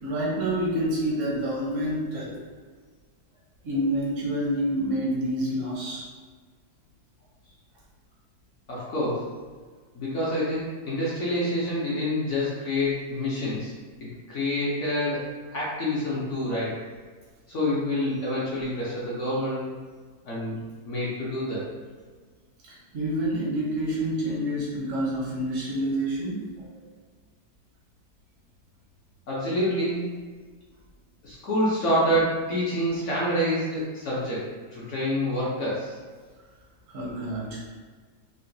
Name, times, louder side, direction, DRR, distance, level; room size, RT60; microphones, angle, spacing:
voice 1, 0.0-2.4 3.6-6.1 22.6-26.5 36.9-37.6, right 1 dB, 65° right, -5 dB, 0.8 m, -28 dB
voice 2, 8.7-9.3 9.9-13.7 14.0-16.8 17.5-19.7 20.2-21.7 29.3-30.0 31.2-36.0, left 1 dB, 65° left, -7 dB, 0.7 m, -27 dB
3.8 x 2.1 x 2.6 m, 1.5 s
omnidirectional pair, 2.0 m